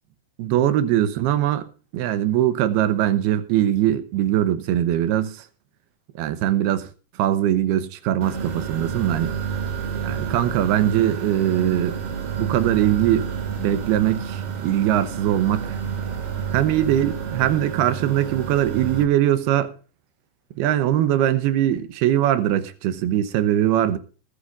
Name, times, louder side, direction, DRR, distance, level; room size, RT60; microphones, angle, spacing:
voice 1, 0.4-1.6 1.9-5.4 6.2-6.9 7.2-9.3 10.0-12.0 12.4-13.3 13.6-15.8 16.5-19.7 20.6-24.0, right 12 dB, 75° right, 2.8 m, -21 dB
sound 1, 8.2-19.0, right 7 dB, 40° right, 2.7 m, -29 dB
20.5 x 12.0 x 2.6 m
omnidirectional pair, 4.9 m